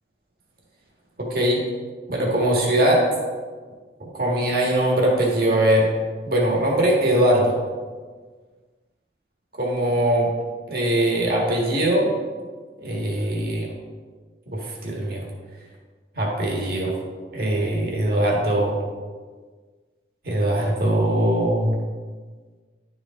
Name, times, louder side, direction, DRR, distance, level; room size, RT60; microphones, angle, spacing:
voice 1, 1.2-1.6 2.1-3.1 4.0-5.9 6.2-7.6 9.6-10.3 10.7-12.1 12.8-13.7 14.5-15.2 16.1-16.9 17.3-18.8 20.2-21.7, right 1 dB, 55° right, -2 dB, 1.7 m, -21 dB
11.0 x 5.1 x 3.6 m, 1.5 s
head